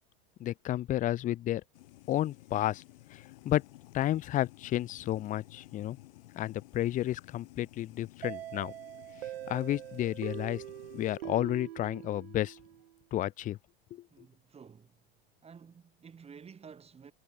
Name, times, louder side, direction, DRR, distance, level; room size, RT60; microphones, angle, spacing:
voice 1, 0.4-1.6 2.1-2.8 3.1-3.6 3.9-6.0 6.4-8.7 9.5-10.6 10.9-12.6 13.1-13.6 13.9-14.0, left 13 dB, 25° left, 0.6 m, -31 dB
sound 1, 1.7-11.2, left 19 dB, 70° left, 4.3 m, -54 dB
sound 2, 8.2-12.9, right 13 dB, 80° right, 4.2 m, -43 dB
voice 2, 14.1-15.0 15.4-17.1, right 6 dB, 20° right, 6.5 m, -52 dB
hypercardioid pair, 120°, 30 cm